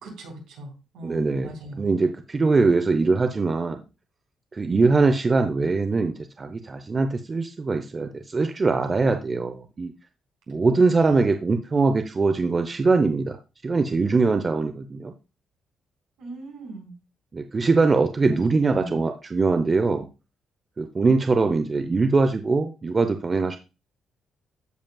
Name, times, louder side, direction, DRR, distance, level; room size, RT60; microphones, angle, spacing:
voice 1, 0.0-1.8 11.0-11.2 16.2-16.9 18.2-18.4 18.7-19.0 21.8-22.0, right 1 dB, 80° right, 0 dB, 3.9 m, -39 dB
voice 2, 1.0-3.8 4.5-9.9 10.5-13.4 13.6-15.1 17.3-20.1 20.8-23.6, right 3 dB, 30° right, 7 dB, 0.7 m, -22 dB
14.5 x 5.2 x 2.3 m, 0.29 s
cardioid pair, 90°, 0 cm